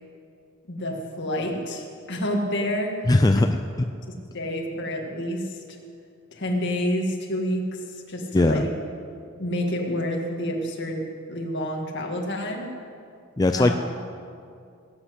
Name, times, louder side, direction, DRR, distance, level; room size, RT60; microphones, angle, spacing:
voice 1, 0.7-2.9 3.4-3.5 4.1-5.6 6.3-7.8 8.1-8.7 9.4-12.7 13.5-13.7, equal, 55° left, 1 dB, 2.1 m, -28 dB
voice 2, 3.1-3.6 8.3-8.6 13.4-13.7, left 2 dB, 15° left, 7 dB, 0.4 m, -19 dB
19.0 x 8.1 x 8.1 m, 2.4 s
head